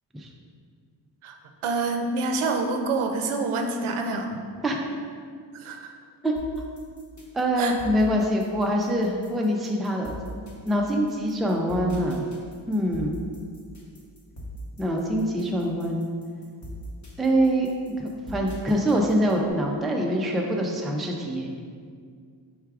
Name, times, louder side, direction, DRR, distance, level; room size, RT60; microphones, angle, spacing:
voice 1, 1.6-4.3 5.6-5.9 7.6-7.7, right 3 dB, 80° right, 4 dB, 0.6 m, -27 dB
sound 1, 6.4-19.5, equal, 35° left, 1.0 m, -41 dB
voice 2, 7.3-10.1 10.6-12.3 12.7-13.2 14.8-16.1 17.2-17.7 18.0-21.5, equal, ahead, 0 dB, 0.3 m, -24 dB
4.7 x 2.3 x 4.7 m, 2.1 s
cardioid pair, 80°, 48 cm